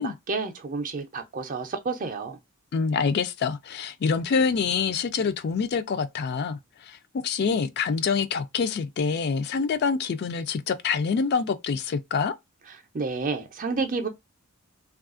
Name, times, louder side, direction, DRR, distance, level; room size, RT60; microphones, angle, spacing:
voice 1, 0.0-2.4 12.7-14.1, right 4 dB, 35° right, 0.5 m, -30 dB
voice 2, 2.7-7.0 7.2-12.3, left 5 dB, 45° left, 0.3 m, -26 dB
3.3 x 2.3 x 2.4 m
head